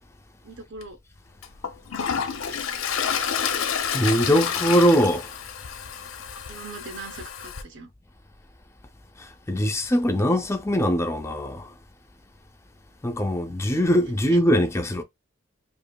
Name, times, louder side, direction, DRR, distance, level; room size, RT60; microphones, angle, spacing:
voice 1, 0.4-1.0 2.2-2.6 6.5-7.9 14.3-14.4, right 3 dB, 60° right, 0.8 m, -41 dB
Toilet flush, 0.8-0.9 1.4-7.6, left 7 dB, 90° left, 0.6 m, -29 dB
voice 2, 3.9-5.3 9.5-11.7 13.0-15.0, equal, 15° left, 0.5 m, -21 dB
5.0 x 2.5 x 2.2 m
head